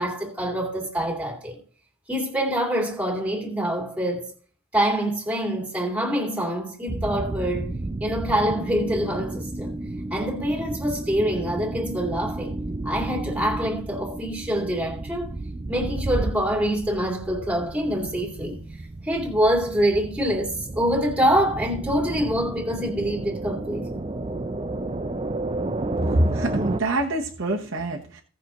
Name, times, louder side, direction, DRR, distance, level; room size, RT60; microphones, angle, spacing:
voice 1, 0.0-1.6 2.1-4.3 4.7-7.7 8.0-9.8 10.1-12.5 12.8-15.4 15.7-24.0, equal, 5° right, 2.4 m, -25 dB
sound 1, 6.9-26.8, right 2 dB, 25° right, 0.4 m, -32 dB
voice 2, 26.1-28.2, right 1 dB, 55° right, 1.1 m, -25 dB
17.5 x 6.1 x 3.0 m
head